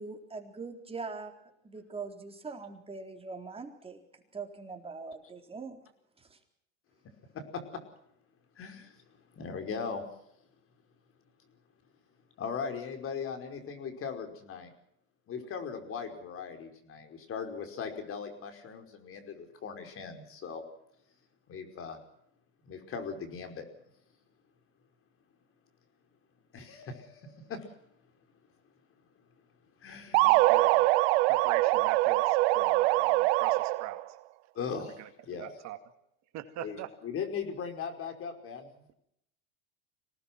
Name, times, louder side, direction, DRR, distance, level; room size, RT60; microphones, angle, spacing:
voice 1, 0.0-1.3 1.6-4.0 4.3-5.8 6.2-6.4, right 4 dB, 15° right, 4 dB, 3.9 m, -42 dB
voice 2, 8.6-10.0 12.4-14.7 15.3-20.6 21.5-22.0 22.6-23.6 26.5-27.6 29.8-30.5 34.6-35.5 36.6-38.7, left 6 dB, 40° left, 6 dB, 5.2 m, -39 dB
sound 1, 30.1-34.0, right 20 dB, 65° right, 1.0 m, -24 dB
voice 3, 30.2-30.9 31.3-34.0 34.7-35.8 36.3-36.9, right 12 dB, 50° right, 8 dB, 2.3 m, -42 dB
25.5 x 18.5 x 6.1 m, 0.75 s
supercardioid pair, 100°, 34 cm